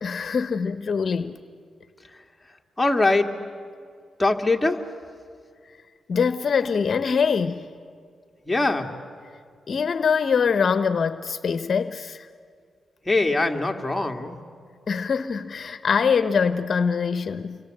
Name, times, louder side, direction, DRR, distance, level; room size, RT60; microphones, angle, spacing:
voice 1, 0.0-1.4 6.1-7.7 9.7-12.3 14.9-17.6, left 6 dB, 55° left, 11 dB, 0.9 m, -23 dB
voice 2, 2.8-3.3 4.2-4.8 8.5-8.9 13.1-14.4, left 2 dB, 10° left, 2 dB, 2.3 m, -22 dB
29.5 x 25.5 x 7.9 m, 2.1 s
cardioid pair, 80°, 0 cm